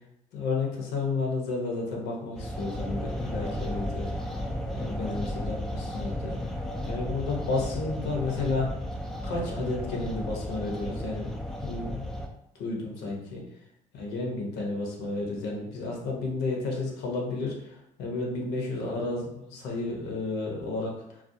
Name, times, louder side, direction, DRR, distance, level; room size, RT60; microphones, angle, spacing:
voice 1, 0.3-4.4 4.7-8.7 9.2-11.3 11.6-12.3 12.5-13.4 13.9-21.2, left 3 dB, 80° left, -1 dB, 0.8 m, -32 dB
sound 1, 2.3-12.3, equal, 5° left, 0.3 m, -34 dB
2.4 x 2.3 x 2.6 m, 0.81 s
cardioid pair, 110°, 17 cm